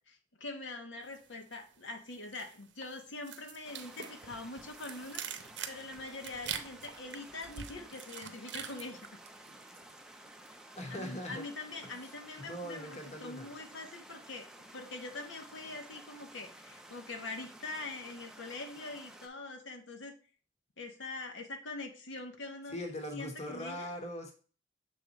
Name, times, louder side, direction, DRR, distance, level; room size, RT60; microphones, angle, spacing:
voice 1, 0.1-5.2 5.7-9.0 10.9-14.5 14.7-20.2 20.8-22.7 23.1-23.9, left 2 dB, 90° left, 4 dB, 1.1 m, -43 dB
sound 1, 1.1-1.8 2.1-9.9 10.2-10.6, right 8 dB, 70° right, 0.7 m, -45 dB
sound 2, 3.6-19.3, right 1 dB, 5° right, 0.5 m, -53 dB
voice 2, 10.8-11.4 11.8-11.9 12.4-13.5 22.7-24.3, left 1 dB, 35° left, 4 dB, 1.0 m, -41 dB
6.7 x 3.6 x 4.0 m, 0.39 s
head